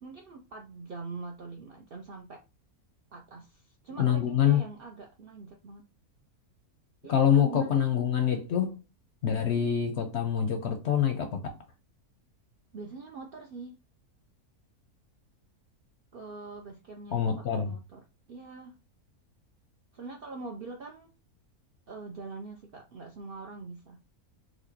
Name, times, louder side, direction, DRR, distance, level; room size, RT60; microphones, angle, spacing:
voice 1, 0.0-2.4 3.1-5.9 7.0-7.8 12.7-13.8 16.1-18.0 18.3-18.8 19.9-21.1 21.9-24.0, right 3 dB, 65° right, 0.5 m, -43 dB
voice 2, 4.0-4.6 7.1-8.8 9.2-11.4 17.1-17.7, left 8 dB, 65° left, 0.7 m, -25 dB
4.3 x 2.5 x 2.7 m
omnidirectional pair, 1.6 m